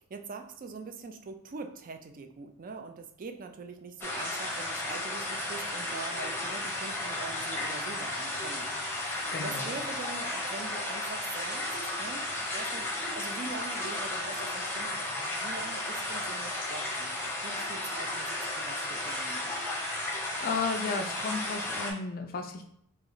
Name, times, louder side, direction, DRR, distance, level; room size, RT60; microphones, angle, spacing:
voice 1, 0.0-8.7 9.4-11.6 12.0-19.5, right 4 dB, 40° right, 6 dB, 0.4 m, -43 dB
sound 1, 4.0-21.9, left 1 dB, 10° left, 0.7 m, -34 dB
voice 2, 9.3-9.8 20.4-22.7, left 4 dB, 40° left, 5 dB, 0.4 m, -33 dB
3.1 x 2.9 x 3.8 m, 0.68 s
head